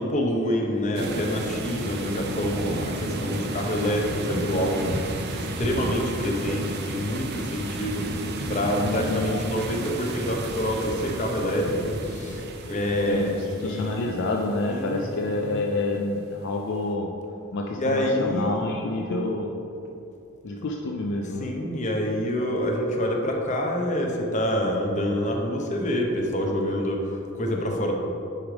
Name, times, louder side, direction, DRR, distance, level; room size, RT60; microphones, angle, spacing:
voice 1, 0.0-4.9 5.3-14.1 14.7-15.1 17.7-18.6 21.4-27.9, equal, 35° left, 1 dB, 0.8 m, -27 dB
sound 1, 0.9-15.5, right 2 dB, 50° right, 0.6 m, -32 dB
voice 2, 8.7-9.6 13.1-13.3 13.6-17.1 17.5-19.5 20.4-21.5, left 2 dB, 55° left, 0 dB, 0.5 m, -28 dB
9.7 x 3.3 x 5.0 m, 2.8 s
head